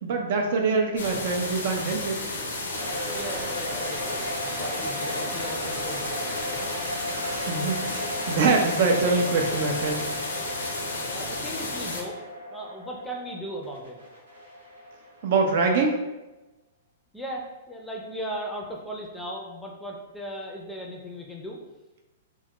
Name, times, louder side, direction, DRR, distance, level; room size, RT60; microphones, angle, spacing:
voice 1, 0.0-2.2 7.1-10.1 15.2-16.0, right 4 dB, 60° right, 3 dB, 0.4 m, -24 dB
sound 1, 1.0-12.0, left 2 dB, 80° left, 0.5 m, -33 dB
sound 2, 2.7-15.6, equal, 90° right, 0.8 m, -35 dB
voice 2, 3.1-6.7 7.0-7.4 11.1-12.2 12.5-14.0 17.1-21.6, equal, 5° left, -1 dB, 0.4 m, -37 dB
2.2 x 2.1 x 2.8 m, 1.1 s
hypercardioid pair, 115°, 0 cm